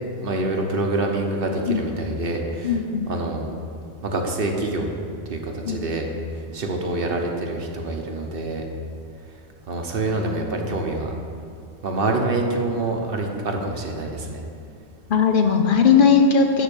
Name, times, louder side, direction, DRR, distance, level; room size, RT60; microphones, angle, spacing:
voice 1, 0.2-2.8 3.1-3.5 4.0-4.9 5.3-6.1 6.5-8.6 9.7-11.1 11.8-14.4, right 2 dB, 55° right, 2 dB, 1.1 m, -26 dB
voice 2, 2.6-3.1 5.6-5.8 15.1-16.6, left 6 dB, 55° left, 4 dB, 0.7 m, -18 dB
11.5 x 3.9 x 7.0 m, 2.3 s
omnidirectional pair, 1.1 m